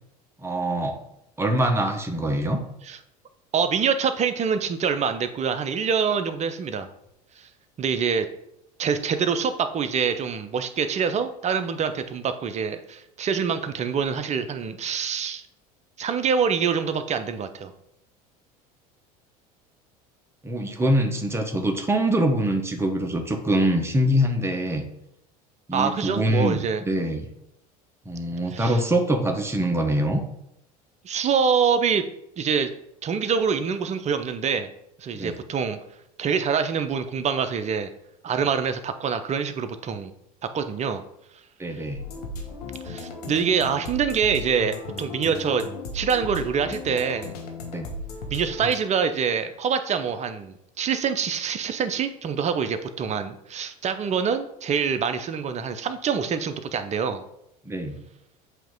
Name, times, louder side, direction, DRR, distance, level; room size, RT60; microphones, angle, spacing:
voice 1, 0.4-1.0 1.4-2.6 20.4-24.8 25.7-26.6 26.8-27.2 28.0-30.2 35.1-35.4 41.6-42.0 47.7-47.9 57.6-58.0, right 1 dB, 15° right, 4 dB, 1.2 m, -24 dB
voice 2, 3.5-6.9 7.4-7.5 7.8-8.3 8.8-15.4 16.0-17.7 25.7-26.8 28.5-28.8 31.0-32.0 32.4-32.7 33.0-34.7 35.0-35.8 36.2-37.9 38.2-40.1 40.4-41.0 42.8-45.6 45.9-47.3 48.3-57.2, right 6 dB, 35° right, 10 dB, 0.7 m, -25 dB
sound 1, 41.9-48.7, left 2 dB, 90° left, 1.2 m, -36 dB
7.9 x 3.0 x 4.6 m, 0.80 s
hypercardioid pair, 85°, 19 cm